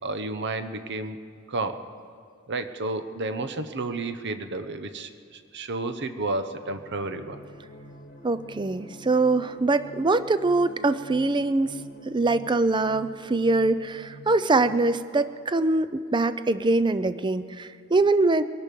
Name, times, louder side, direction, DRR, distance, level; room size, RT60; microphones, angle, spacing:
voice 1, 0.0-1.2 1.5-1.9 2.5-7.4, right 2 dB, 55° right, 9 dB, 0.9 m, -31 dB
sound 1, 6.2-14.8, equal, 45° left, 1.2 m, -47 dB
voice 2, 8.2-11.8 12.1-18.4, right 2 dB, 20° right, 13 dB, 0.5 m, -23 dB
23.0 x 11.0 x 5.3 m, 2.4 s
head